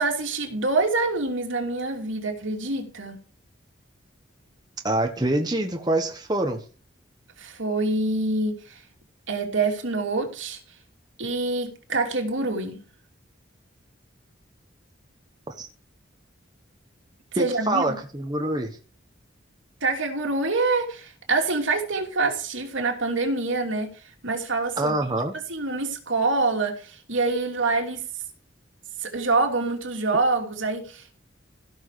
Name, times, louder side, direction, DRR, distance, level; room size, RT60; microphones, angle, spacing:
voice 1, 0.0-3.2 7.4-8.8 9.3-10.6 11.2-12.8 17.3-17.9 19.8-23.9 24.2-24.9 25.5-28.0 29.0-31.2, right 3 dB, 80° right, 2.9 m, -26 dB
voice 2, 4.8-6.6 15.5-15.7 17.4-18.8 24.8-25.3, right 2 dB, 20° right, 1.3 m, -25 dB
16.5 x 6.4 x 4.9 m
head